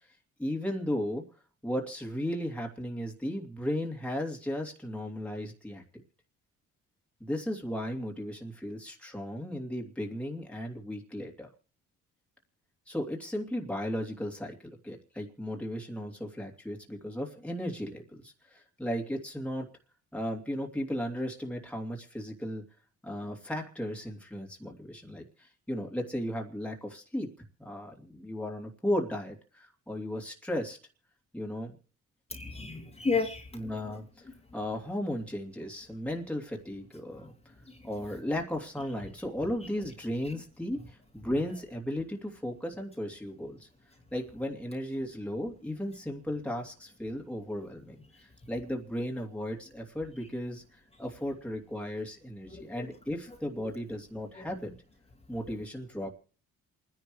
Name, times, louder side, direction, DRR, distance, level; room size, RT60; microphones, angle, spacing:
voice 1, 0.4-1.2 1.6-5.8 7.2-11.5 12.9-19.7 20.1-22.6 23.0-27.3 27.6-30.8 31.3-31.8 33.5-34.0 34.5-37.3 37.8-43.7 44.1-50.6 51.0-54.7 55.3-56.1, equal, 5° left, 2.8 m, -35 dB
voice 2, 32.3-33.5 37.7-37.8 52.5-52.9 54.3-54.5, left 4 dB, 20° left, 2.6 m, -32 dB
28.0 x 10.5 x 3.2 m
cardioid pair, 90°, 30 cm